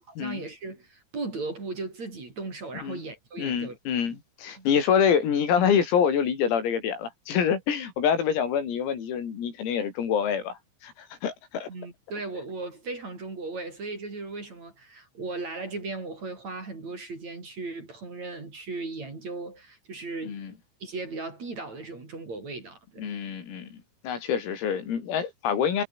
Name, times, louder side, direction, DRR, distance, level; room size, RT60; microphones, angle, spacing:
voice 1, 0.0-3.8 4.0-4.2 4.6-4.7 11.7-20.4 20.8-23.2, right 3 dB, 35° right, 6.5 m, -37 dB
voice 2, 3.4-11.7 20.3-20.5 23.0-23.8 24.0-25.9, left 7 dB, 85° left, 7.3 m, -26 dB
omnidirectional pair, 6.0 m